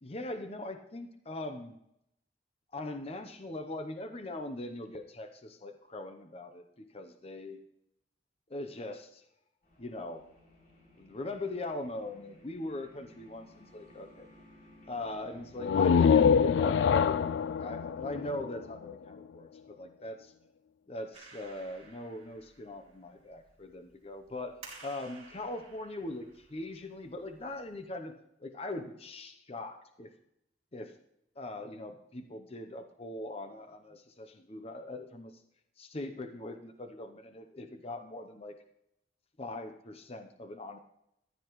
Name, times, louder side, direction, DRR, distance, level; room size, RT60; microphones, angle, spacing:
voice 1, 0.0-1.8 2.7-7.6 8.5-9.2 9.8-10.2 11.0-14.3 14.9-20.3 20.9-28.1 28.4-30.1 30.7-30.9 31.4-35.3 35.8-38.6 39.4-40.8, left 2 dB, 35° left, 6 dB, 0.8 m, -41 dB
sound 1, 9.6-19.6, left 1 dB, 50° left, 3.3 m, -59 dB
sound 2, 15.6-19.2, left 7 dB, 85° left, 0.3 m, -25 dB
Clapping, 21.1-27.8, right 4 dB, 35° right, 4.3 m, -55 dB
15.0 x 10.0 x 3.1 m, 0.78 s
head